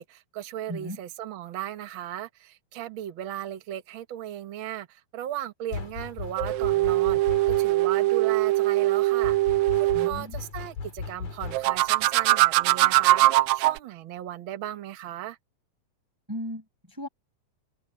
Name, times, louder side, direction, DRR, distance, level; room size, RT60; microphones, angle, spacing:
voice 1, 0.0-7.2 7.6-9.4 9.8-15.4, right 12 dB, 60° right, 1.3 m, -36 dB
voice 2, 0.7-1.0 9.9-10.3 16.3-17.1, equal, 5° right, 5.3 m, -36 dB
sound 1, 5.7-8.0 9.2-11.9, left 5 dB, 90° left, 5.6 m, -37 dB
sound 2, 6.4-10.1 11.5-13.8, right 17 dB, 85° right, 1.6 m, -22 dB
omnidirectional pair, 3.9 m